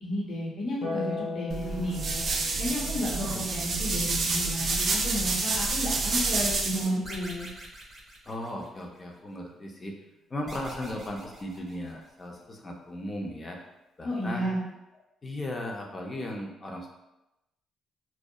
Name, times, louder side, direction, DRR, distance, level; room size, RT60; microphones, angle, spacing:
voice 1, 0.0-2.2 2.6-7.5 14.0-14.6, equal, 50° left, -5 dB, 0.9 m, -32 dB
Harp, 0.8-7.3 8.9-9.9, left 3 dB, 85° left, 1.1 m, -41 dB
sound 1, 1.5-6.9, right 3 dB, 50° right, 0.4 m, -28 dB
sound 2, 7.0-9.0 10.5-12.3, right 1 dB, 25° right, 0.7 m, -44 dB
voice 2, 8.3-10.0 10.3-13.6 14.0-14.5 15.2-16.9, left 1 dB, 30° left, 0 dB, 0.5 m, -37 dB
2.7 x 2.0 x 2.2 m, 0.93 s
cardioid pair, 85°, 0 cm